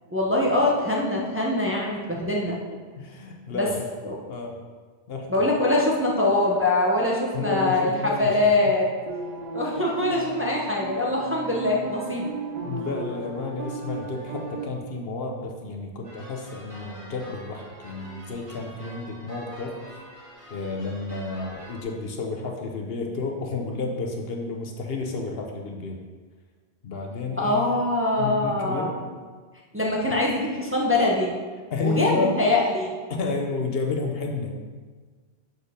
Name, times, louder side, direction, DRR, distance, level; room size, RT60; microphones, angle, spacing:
voice 1, 0.1-2.6 3.5-3.7 4.0-4.1 5.3-8.9 9.5-12.3 27.4-28.9 29.7-31.3 31.8-32.9, left 2 dB, 15° right, -3 dB, 0.7 m, -23 dB
voice 2, 3.0-3.8 4.3-4.6 5.1-5.3 7.3-8.5 12.6-20.0 20.5-26.0 26.8-27.6 28.2-29.1 30.1-30.2 31.7-32.3 33.1-34.6, left 3 dB, 65° left, 2 dB, 1.0 m, -31 dB
sound 1, 9.1-14.6, right 4 dB, 45° right, 0.7 m, -35 dB
sound 2, 16.0-21.8, right 1 dB, 30° right, 1.6 m, -45 dB
6.7 x 4.4 x 5.0 m, 1.5 s
omnidirectional pair, 1.1 m